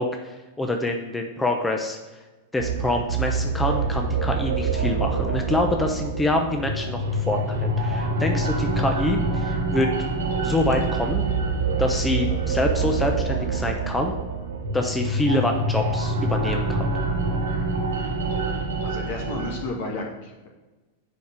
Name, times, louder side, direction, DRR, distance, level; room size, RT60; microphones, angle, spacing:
voice 1, 0.0-2.0 2.5-9.9 10.4-11.2 11.8-14.1 14.7-16.9, left 2 dB, 10° left, 3 dB, 0.8 m, -26 dB
sound 1, 2.6-19.6, right 3 dB, 85° right, 1.1 m, -26 dB
voice 2, 18.8-20.5, left 2 dB, 65° left, 0 dB, 2.0 m, -32 dB
6.9 x 5.1 x 4.7 m, 1.2 s
hypercardioid pair, 105°, 0 cm